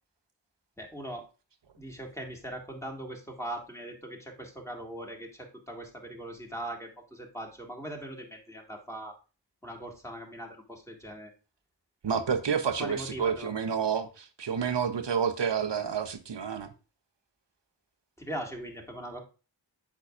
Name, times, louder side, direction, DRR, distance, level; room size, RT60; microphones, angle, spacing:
voice 1, 0.8-1.3 1.8-9.1 9.6-11.3 12.8-13.5 18.2-19.2, right 1 dB, 5° left, 1.9 m, -40 dB
voice 2, 12.0-16.7, right 7 dB, 80° right, 0.7 m, -29 dB
8.4 x 6.2 x 2.4 m
wide cardioid pair, 45°, 42 cm